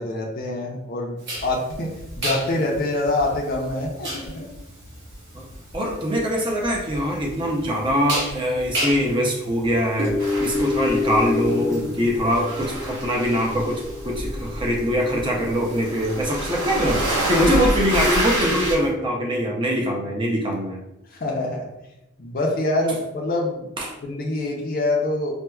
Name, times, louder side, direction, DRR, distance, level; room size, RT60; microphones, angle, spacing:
voice 1, 0.0-4.5 21.1-21.7 22.2-23.7 24.0-25.3, left 2 dB, 40° left, -1 dB, 0.5 m, -25 dB
sound 1, 1.2-18.9, left 2 dB, 50° right, 1.0 m, -31 dB
voice 2, 5.7-10.1 10.4-20.8 23.8-24.0, equal, 20° right, 0 dB, 0.5 m, -23 dB
sound 2, 10.2-11.8 12.1-18.8, right 1 dB, 80° right, 1.0 m, -28 dB
4.3 x 2.1 x 2.3 m, 0.90 s
head